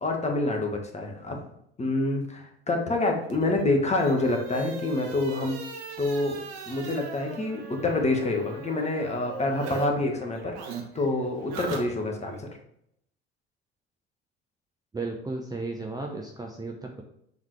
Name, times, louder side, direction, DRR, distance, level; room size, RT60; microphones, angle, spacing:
voice 1, 0.0-1.4 1.8-5.6 6.0-12.5, left 2 dB, 20° left, 3 dB, 1.5 m, -27 dB
sound 1, 3.2-9.9 10.1-12.4, right 5 dB, 55° right, 1.3 m, -40 dB
voice 2, 14.9-17.0, right 3 dB, 10° right, 1 dB, 0.8 m, -34 dB
7.3 x 3.9 x 3.3 m, 0.73 s
hypercardioid pair, 70°, 31 cm